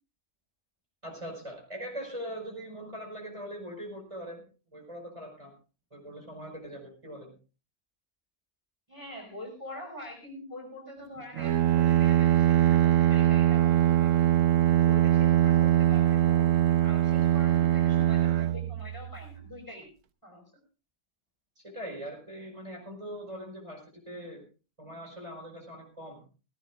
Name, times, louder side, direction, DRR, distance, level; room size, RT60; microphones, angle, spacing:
voice 1, 1.0-4.4 4.7-5.5 5.9-7.3 21.6-24.4 24.8-26.2, equal, 20° right, 0 dB, 5.4 m, -41 dB
voice 2, 8.9-14.3 14.7-19.9 20.2-20.4, left 1 dB, 15° left, 0 dB, 4.9 m, -44 dB
Bowed string instrument, 11.4-19.3, right 12 dB, 70° right, 1.3 m, -22 dB
18.0 x 17.0 x 2.5 m, 0.34 s
omnidirectional pair, 1.4 m